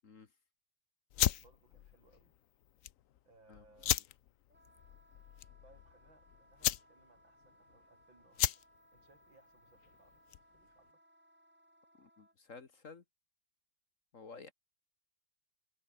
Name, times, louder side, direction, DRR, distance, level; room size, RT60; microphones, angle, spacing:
sound 1, 1.1-10.6, left 12 dB, 65° left, 0.8 m, -37 dB
voice 1, 1.2-2.4 3.2-4.0 5.6-8.6 8.9-10.3 10.5-11.0, right 2 dB, 80° right, 7.2 m, -66 dB
Wind instrument woodwind instrument, 4.5-12.3, right 1 dB, 5° right, 2.9 m, -67 dB
voice 2, 12.0-13.0 14.1-14.5, left 4 dB, 45° left, 1.8 m, -52 dB
omnidirectional pair, 2.1 m